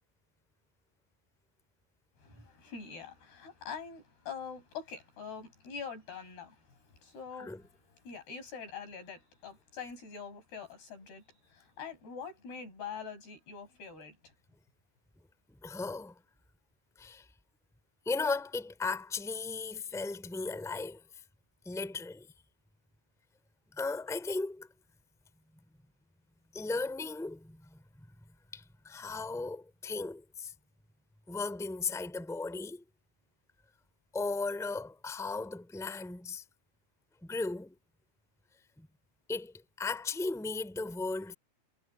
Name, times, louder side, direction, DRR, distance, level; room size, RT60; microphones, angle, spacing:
voice 1, 2.2-7.5 8.0-11.2 11.5-14.3, left 6 dB, 80° left, 9.6 m, -44 dB
voice 2, 15.6-16.1 17.0-17.2 18.0-21.0 21.6-22.3 23.7-24.7 26.5-27.8 28.5-30.5 31.3-32.8 34.1-36.4 37.2-37.7 38.8-38.9 39.3-41.3, left 3 dB, ahead, 3.1 m, -36 dB
omnidirectional pair, 4.6 m